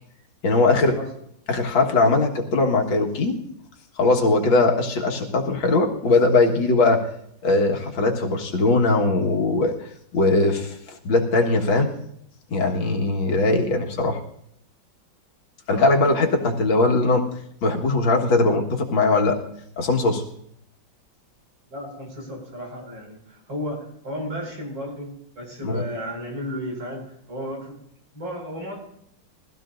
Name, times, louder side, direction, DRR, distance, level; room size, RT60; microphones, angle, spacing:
voice 1, 0.4-1.0 1.5-3.4 4.0-7.0 7.4-11.9 12.5-14.2 15.7-17.3 17.6-19.4 19.8-20.2 25.6-25.8, left 3 dB, 85° left, 1 dB, 2.3 m, -20 dB
voice 2, 15.7-16.5 21.7-27.8 28.1-28.7, equal, 90° right, -1 dB, 5.8 m, -34 dB
21.5 x 15.5 x 2.5 m, 0.71 s
omnidirectional pair, 2.0 m